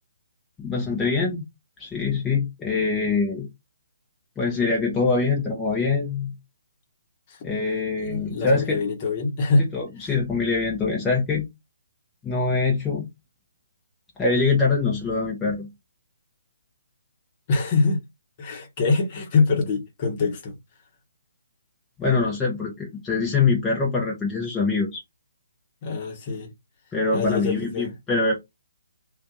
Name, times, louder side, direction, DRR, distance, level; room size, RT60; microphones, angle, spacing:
voice 1, 0.6-1.5 1.8-3.5 4.4-6.3 7.4-8.8 9.7-11.5 12.2-13.1 14.2-15.7 22.0-25.0 26.9-28.4, left 4 dB, 10° left, 0.8 m, -24 dB
voice 2, 8.0-9.6 17.5-18.0 18.4-20.6 25.8-26.5 27.1-27.9, left 3 dB, 35° left, 1.1 m, -24 dB
2.6 x 2.5 x 3.6 m
figure-of-eight pair, 140°, 0 cm